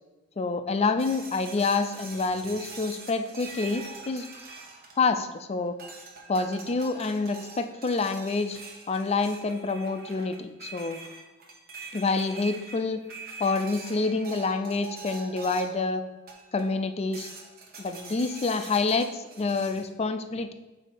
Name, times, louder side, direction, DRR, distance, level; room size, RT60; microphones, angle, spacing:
voice 1, 0.4-4.3 5.0-5.8 6.3-8.6 8.9-11.0 11.9-13.0 13.4-16.0 16.5-17.3 17.8-20.5, left 3 dB, 35° left, 9 dB, 0.4 m, -27 dB
sound 1, 1.0-5.4 5.8-15.9 16.3-16.8 17.1-19.9, right 4 dB, 55° right, 1.0 m, -44 dB
7.4 x 2.8 x 5.2 m, 1.1 s
head